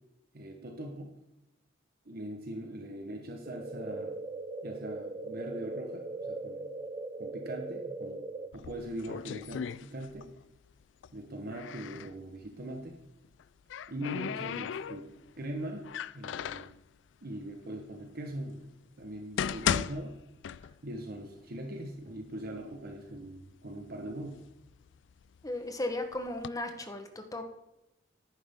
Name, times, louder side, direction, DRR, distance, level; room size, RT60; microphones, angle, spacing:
voice 1, 0.3-1.1 2.0-4.2 4.6-6.7 7.2-8.3 8.5-10.3 11.1-13.0 13.9-16.7 17.2-20.2 20.8-24.4, right 1 dB, 55° right, 3 dB, 1.1 m, -41 dB
sound 1, 3.5-8.5, right 2 dB, 25° right, 0.6 m, -39 dB
sound 2, 8.5-10.4 10.7-12.1 13.2-15.3 15.8-16.8 17.5-17.6 18.3-18.4 19.0-21.0 21.3-21.4 22.2-22.3 22.6-23.3 23.8-25.5 26.1-26.5, left 8 dB, 70° left, 0.3 m, -36 dB
voice 2, 25.4-27.5, left 1 dB, 20° left, 6 dB, 1.1 m, -36 dB
11.0 x 9.3 x 3.6 m, 0.90 s
head